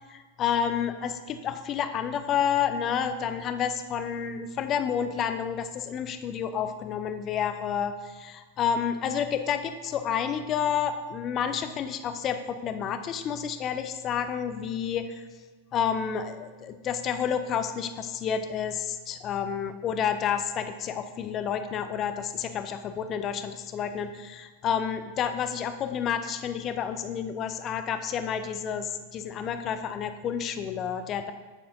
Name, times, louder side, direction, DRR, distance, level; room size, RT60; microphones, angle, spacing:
voice 1, 0.1-15.2 15.7-31.3, left 8 dB, 30° left, 8 dB, 0.5 m, -30 dB
9.9 x 4.3 x 3.9 m, 1.3 s
figure-of-eight pair, 90°, 0 cm